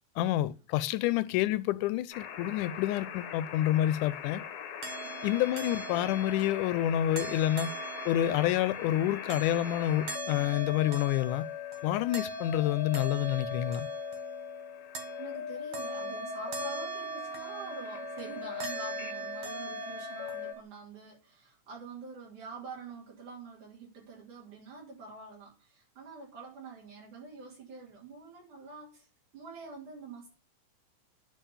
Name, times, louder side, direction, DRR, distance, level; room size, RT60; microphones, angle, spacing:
voice 1, 0.2-4.4 5.2-7.7 8.1-11.5 11.8-13.9, left 13 dB, 90° left, 2.1 m, -28 dB
sound 1, 2.1-20.5, left 10 dB, 75° left, 2.1 m, -41 dB
sound 2, 4.8-20.6, right 6 dB, 60° right, 2.3 m, -41 dB
voice 2, 15.2-29.1 29.3-30.3, right 3 dB, 75° right, 4.5 m, -46 dB
9.1 x 3.7 x 7.1 m
omnidirectional pair, 3.5 m